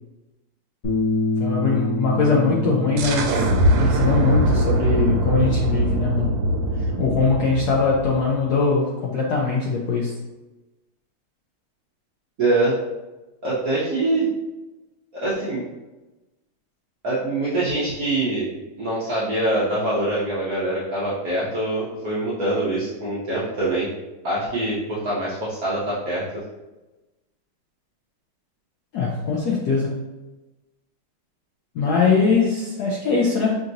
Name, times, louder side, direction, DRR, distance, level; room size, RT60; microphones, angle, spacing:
Bass guitar, 0.8-7.1, left 2 dB, 45° left, 1.1 m, -28 dB
voice 1, 1.4-3.4 3.8-6.5 7.0-10.1 28.9-30.0 31.7-33.6, left 4 dB, 75° left, -4 dB, 0.9 m, -21 dB
sound 1, 3.0-8.5, right 1 dB, 90° right, 1.5 m, -22 dB
voice 2, 12.4-12.7 13.4-14.3 15.1-15.6 17.0-18.5 18.8-23.9 24.2-26.4, right 2 dB, 55° right, -9 dB, 1.1 m, -24 dB
5.3 x 2.8 x 2.6 m, 1.1 s
omnidirectional pair, 2.3 m